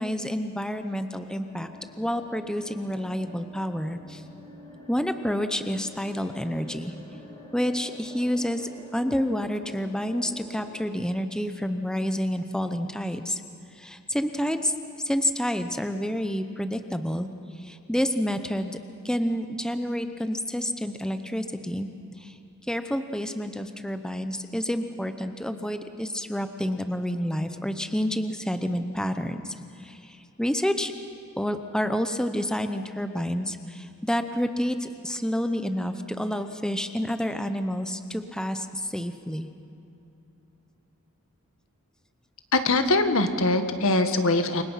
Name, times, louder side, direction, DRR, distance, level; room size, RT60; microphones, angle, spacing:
voice 1, 0.0-1.7 2.0-4.2 4.9-6.9 7.5-13.4 13.7-14.7 15.0-17.3 17.6-18.8 19.0-21.9 22.2-22.4 22.7-30.9 31.4-39.5, equal, 5° left, 8 dB, 0.8 m, -29 dB
sound 1, 1.4-10.8, equal, 25° left, 6.7 m, -48 dB
voice 2, 42.5-44.6, left 2 dB, 65° left, 8 dB, 1.7 m, -22 dB
29.0 x 23.5 x 5.8 m, 2.8 s
head